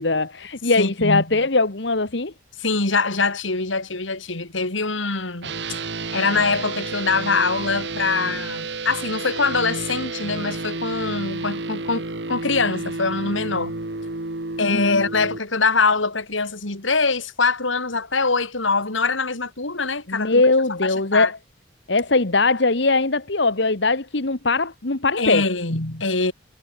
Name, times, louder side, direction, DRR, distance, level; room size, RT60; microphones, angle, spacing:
voice 1, 0.0-2.3 14.6-15.0 20.1-21.4 21.9-25.4, left 3 dB, 60° left, 1.6 m, -20 dB
voice 2, 0.8-1.4 2.6-5.8 6.1-13.7 14.6-20.4 20.8-21.3 25.2-26.3, left 4 dB, 80° left, 3.5 m, -23 dB
sound 1, 5.4-15.4, right 3 dB, 60° right, 1.8 m, -31 dB
head